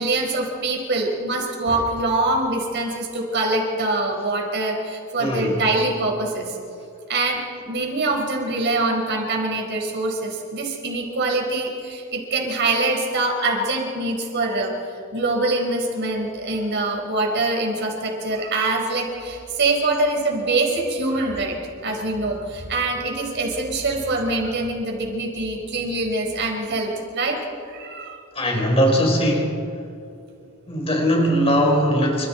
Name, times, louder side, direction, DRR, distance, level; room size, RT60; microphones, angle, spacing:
voice 1, 0.0-6.6 7.1-7.4 7.6-21.6 21.8-27.4 27.7-28.2, right 2 dB, 55° right, 0 dB, 5.0 m, -24 dB
voice 2, 5.2-5.6 28.3-29.5 30.7-32.3, equal, 25° left, 1 dB, 4.7 m, -20 dB
28.5 x 26.5 x 4.5 m, 2.5 s
head